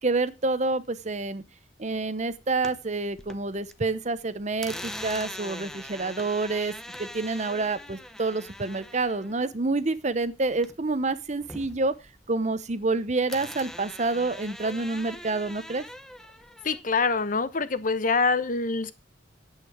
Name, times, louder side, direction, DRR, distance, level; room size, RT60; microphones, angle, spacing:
voice 1, 0.0-1.4 1.8-6.7 7.0-11.9 12.3-15.8, right 3 dB, 40° right, 0.9 m, -28 dB
sound 1, 2.3-3.7 4.0-11.0 11.3-12.9 13.3-16.8, left 1 dB, 5° left, 0.8 m, -42 dB
voice 2, 16.6-18.9, left 4 dB, 45° left, 1.0 m, -25 dB
9.8 x 8.5 x 4.8 m
head